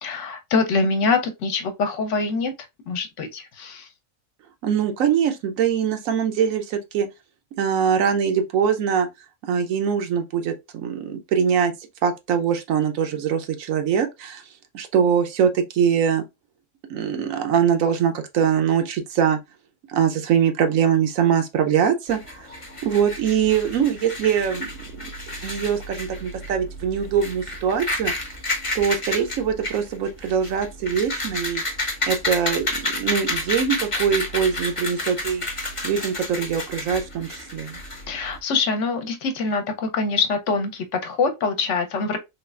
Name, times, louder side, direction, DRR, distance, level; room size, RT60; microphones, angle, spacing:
voice 1, 0.0-2.5 2.9-3.9 38.1-42.2, left 4 dB, 70° left, 0.9 m, -24 dB
voice 2, 4.6-7.1 7.6-9.1 9.4-11.7 12.0-14.4 14.7-16.2 16.9-19.4 19.9-22.5 22.8-24.7 25.0-25.1 25.4-28.1 28.7-31.6 32.1-35.5 35.8-37.8, right 7 dB, 85° right, 1.1 m, -22 dB
sound 1, 22.1-38.4, left 2 dB, 30° left, 0.8 m, -30 dB
3.2 x 3.1 x 2.4 m
omnidirectional pair, 1.4 m